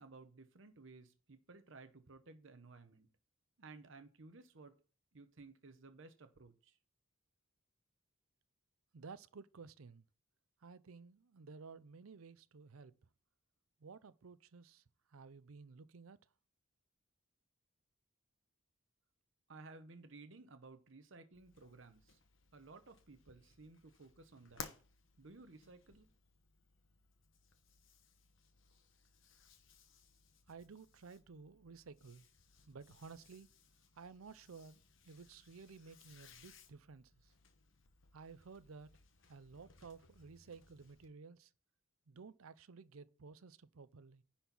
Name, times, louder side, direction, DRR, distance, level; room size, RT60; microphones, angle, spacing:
voice 1, 0.0-3.1 3.6-4.7 5.1-6.8 19.5-22.2 22.5-24.7 25.2-26.1, right 3 dB, 65° right, 0.9 m, -57 dB
voice 2, 8.9-10.0 10.6-12.9 13.8-14.8 15.1-16.2 30.5-32.2 32.7-33.5 34.0-34.8 35.1-37.3 38.1-38.9 39.3-41.5 42.1-44.2, right 5 dB, 85° right, 0.6 m, -54 dB
sound 1, 21.3-41.1, left 5 dB, 65° left, 1.1 m, -60 dB
10.5 x 4.4 x 5.5 m
head